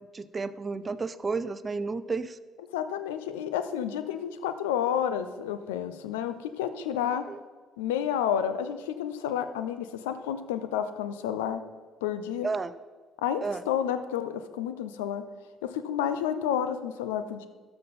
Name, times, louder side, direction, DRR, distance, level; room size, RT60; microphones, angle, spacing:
voice 1, 0.1-2.4 7.3-7.4 12.4-12.7 13.4-13.6, right 4 dB, 30° right, 14 dB, 0.5 m, -32 dB
voice 2, 2.7-7.2 7.8-11.6 12.0-12.5 13.2-15.2 15.6-17.5, left 9 dB, 90° left, 11 dB, 0.5 m, -30 dB
12.5 x 5.7 x 4.1 m, 1.4 s
hypercardioid pair, 60°, 0 cm